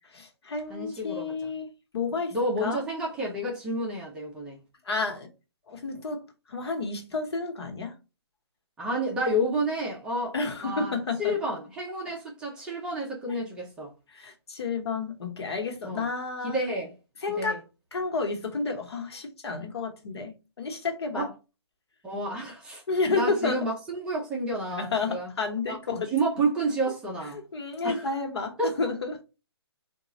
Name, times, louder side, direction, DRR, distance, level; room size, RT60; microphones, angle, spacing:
voice 1, 0.1-1.7 1.9-2.8 4.8-5.3 5.7-8.0 10.3-11.3 14.1-16.7 17.2-17.6 17.9-21.3 22.9-23.7 24.7-26.1 27.3-29.2, left 4 dB, 75° left, 1.2 m, -31 dB
voice 2, 0.7-1.5 2.3-4.6 8.8-10.3 10.6-10.9 11.2-13.9 15.8-16.1 16.4-16.9 17.4-17.6 21.1-21.3 22.0-22.8 23.1-25.3 25.7-25.8 26.1-27.4 27.8-28.1 28.6-28.8, right 1 dB, 5° right, 0.4 m, -30 dB
3.7 x 2.3 x 4.1 m
hypercardioid pair, 165°, 14 cm